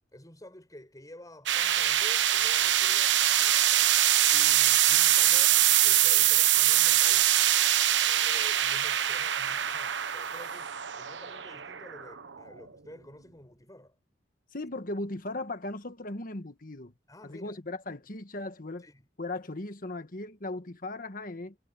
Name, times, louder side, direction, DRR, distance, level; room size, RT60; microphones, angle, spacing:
voice 1, 0.1-3.7 4.3-7.4 8.0-13.9 17.1-17.6 18.8-19.1, left 1 dB, 20° left, 7.9 m, -50 dB
sound 1, 1.5-12.6, right 12 dB, 90° right, 1.1 m, -24 dB
voice 2, 14.5-16.9 17.2-18.9 19.2-21.5, left 2 dB, 50° left, 1.6 m, -37 dB
head